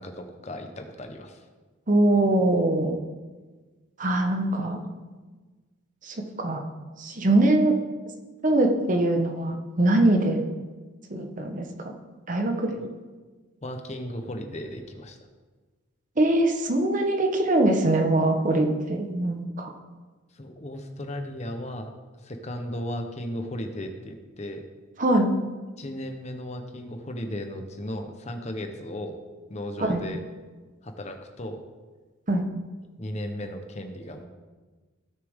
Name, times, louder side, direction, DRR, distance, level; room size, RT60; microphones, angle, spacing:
voice 1, 0.0-1.5 12.7-13.0 13.6-15.2 20.3-21.9 22.2-24.6 25.8-29.2 29.5-30.2 30.8-31.6 33.0-34.2, left 1 dB, 35° left, 5 dB, 0.9 m, -35 dB
voice 2, 1.9-3.0 4.0-4.8 6.0-6.6 7.0-7.7 8.4-10.4 11.1-11.9 12.3-12.8 16.2-19.7 25.0-25.4 29.8-30.0 32.3-32.4, right 1 dB, 40° right, 4 dB, 1.0 m, -23 dB
16.5 x 6.6 x 3.6 m, 1.3 s
head